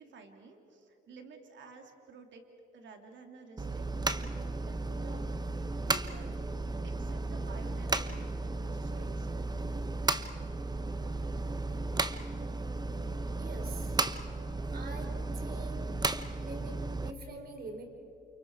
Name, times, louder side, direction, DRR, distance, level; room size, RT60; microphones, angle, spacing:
voice 1, 0.0-3.9 4.1-6.6 6.8-9.3, right 4 dB, 70° right, 4 dB, 3.1 m, -52 dB
sound 1, 3.6-17.1, right 3 dB, 20° right, 1.0 m, -34 dB
voice 2, 13.4-13.9 14.7-15.9 16.4-17.9, right 3 dB, 50° right, 3 dB, 4.4 m, -45 dB
29.0 x 29.0 x 4.8 m, 3.0 s
cardioid pair, 90°, 20 cm